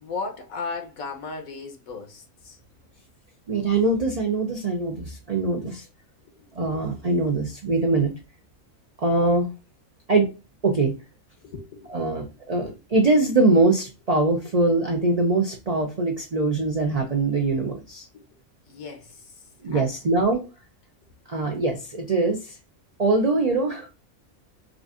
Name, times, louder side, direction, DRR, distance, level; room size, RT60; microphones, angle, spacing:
voice 1, 0.0-2.6 6.2-7.0 11.4-12.0 12.6-12.7 18.1-18.3 18.7-19.3 19.7-19.9, left 4 dB, 75° left, 1.3 m, -36 dB
voice 2, 3.5-5.8 6.6-8.1 9.0-9.5 10.1-10.3 10.6-10.9 11.9-18.1 19.6-20.4 21.3-22.5 23.0-23.9, right 3 dB, 60° right, 0.4 m, -22 dB
4.6 x 2.5 x 2.4 m
omnidirectional pair, 1.5 m